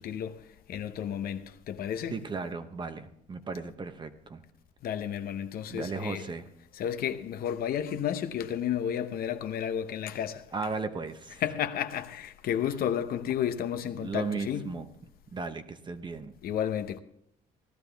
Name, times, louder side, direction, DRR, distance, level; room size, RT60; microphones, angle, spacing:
voice 1, 0.0-2.2 4.8-6.3 6.7-10.5 11.4-14.7 16.4-17.0, left 9 dB, 60° left, 0.9 m, -32 dB
voice 2, 2.1-4.4 5.7-6.4 10.5-11.4 14.0-14.9 15.3-16.3, right 4 dB, 25° right, 1.0 m, -36 dB
17.0 x 12.5 x 3.4 m
cardioid pair, 110°, 17 cm